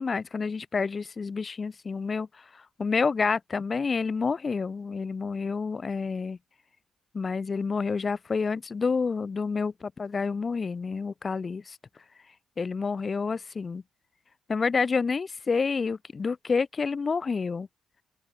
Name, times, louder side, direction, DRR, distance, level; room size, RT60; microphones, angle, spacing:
voice 1, 0.0-2.3 2.8-6.4 7.1-11.8 12.6-13.8 14.5-17.7, left 5 dB, 35° left, 1.5 m, -28 dB
open air
cardioid pair, 90°, 0 cm